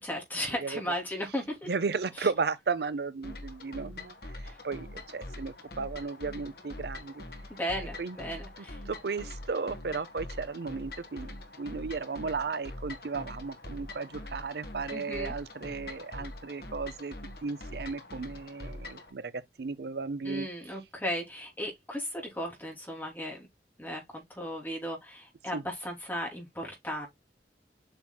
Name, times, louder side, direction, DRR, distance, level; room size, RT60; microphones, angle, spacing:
voice 1, 0.0-1.7 2.2-2.3 4.4-4.6 7.6-8.8 14.9-15.3 20.2-23.5 23.8-27.1, equal, 10° left, 3.0 m, -36 dB
voice 2, 1.7-7.2 8.0-8.2 8.9-17.1 17.4-20.7 25.5-25.6, right 4 dB, 60° right, 0.5 m, -35 dB
sound 1, 3.2-19.1, left 1 dB, 60° left, 1.7 m, -44 dB
7.9 x 6.0 x 2.2 m
head